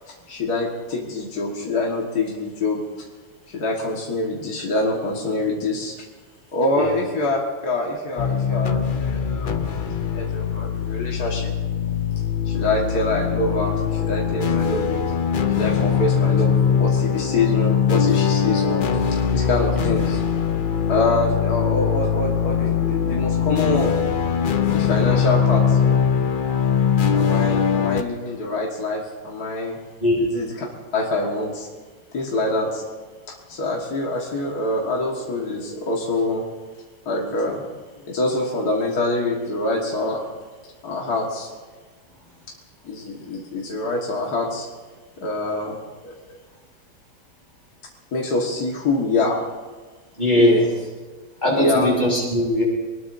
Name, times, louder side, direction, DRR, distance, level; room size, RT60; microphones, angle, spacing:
voice 1, 0.1-2.8 3.5-5.9 6.5-11.5 12.5-15.0 15.5-20.2 20.9-24.0 24.7-25.8 27.1-29.8 30.2-30.7 30.9-31.7 32.1-32.8 33.3-36.4 37.1-37.6 38.1-40.3 40.8-41.5 42.8-44.7 45.2-45.8 46.0-46.4 48.1-49.4 50.3-50.7 51.6-51.9, left 2 dB, 60° left, -2 dB, 2.3 m, -25 dB
sound 1, 8.2-28.0, left 7 dB, 80° left, 0.4 m, -21 dB
voice 2, 50.2-50.6 51.4-52.6, equal, 25° left, -4 dB, 6.5 m, -19 dB
24.5 x 20.0 x 2.7 m, 1.4 s
omnidirectional pair, 1.9 m